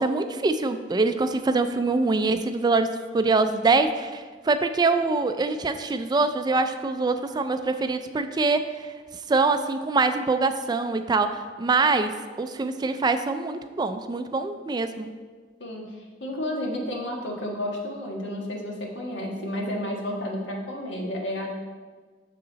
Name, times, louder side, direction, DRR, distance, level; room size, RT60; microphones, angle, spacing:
voice 1, 0.0-8.9 9.3-12.1 12.4-15.1, right 3 dB, 25° right, 9 dB, 0.3 m, -24 dB
voice 2, 15.6-21.5, left 1 dB, 85° left, -1 dB, 1.4 m, -31 dB
6.6 x 6.6 x 4.0 m, 1.4 s
head